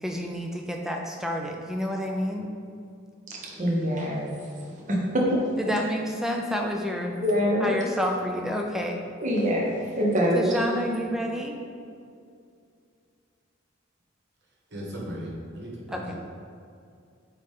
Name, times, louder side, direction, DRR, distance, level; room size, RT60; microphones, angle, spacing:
voice 1, 0.0-2.5 5.6-7.1 7.6-9.0 10.3-11.6 15.9-16.2, equal, ahead, 1 dB, 0.5 m, -29 dB
voice 2, 3.3-5.6 7.2-7.7 9.2-10.6, equal, 40° right, -3 dB, 1.0 m, -25 dB
voice 3, 14.7-16.2, equal, 55° right, -4 dB, 1.4 m, -37 dB
8.6 x 3.2 x 3.7 m, 2.3 s
head